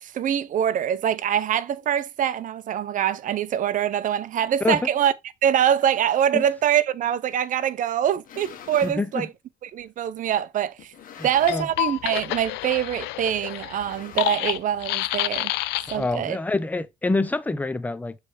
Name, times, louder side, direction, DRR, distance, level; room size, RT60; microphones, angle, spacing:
voice 1, 0.0-5.1 5.4-9.3 9.7-10.9 11.2-15.5 15.9-16.4, right 10 dB, 50° right, 0.6 m, -24 dB
sound 1, 8.0-9.0 9.8-9.9 10.8-11.8 12.1-12.4 12.7-12.8 13.6-14.7, left 8 dB, 55° left, 1.5 m, -45 dB
voice 2, 8.8-9.3 11.2-11.7 15.9-18.2, left 3 dB, 10° left, 0.6 m, -26 dB
sound 2, 11.3-16.1, left 18 dB, 85° left, 0.4 m, -28 dB
6.6 x 3.3 x 4.9 m
cardioid pair, 110°, 17 cm